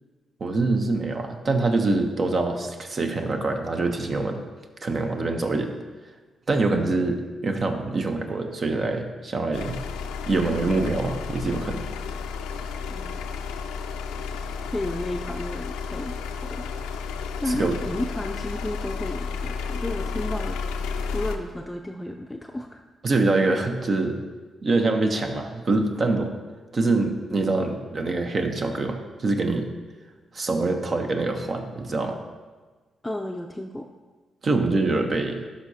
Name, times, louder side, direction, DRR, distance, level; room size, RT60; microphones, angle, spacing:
voice 1, 0.4-4.4 4.8-5.7 6.5-9.7 10.3-11.8 17.5-17.8 23.0-24.2 24.6-26.3 26.7-29.7 30.3-32.2 34.4-35.4, right 3 dB, 50° right, 4 dB, 0.9 m, -24 dB
sound 1, 9.5-21.4, left 5 dB, 85° left, 0.4 m, -32 dB
voice 2, 14.7-16.6 17.4-20.6 21.1-22.8 33.0-33.9, left 1 dB, 15° left, 3 dB, 0.5 m, -32 dB
11.5 x 5.2 x 2.8 m, 1.4 s
hypercardioid pair, 45°, 0 cm